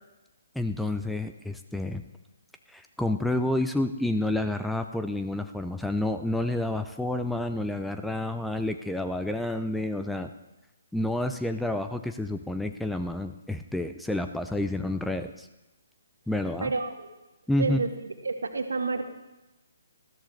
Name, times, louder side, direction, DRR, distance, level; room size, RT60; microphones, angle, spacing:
voice 1, 0.5-2.0 2.7-10.3 10.9-15.5 16.3-16.7 17.5-17.9, left 1 dB, ahead, 7 dB, 0.5 m, -29 dB
voice 2, 16.6-17.1 17.6-17.9 18.2-19.1, right 3 dB, 70° right, 6 dB, 1.5 m, -29 dB
19.5 x 13.5 x 3.3 m, 1.0 s
figure-of-eight pair, 135°, 0 cm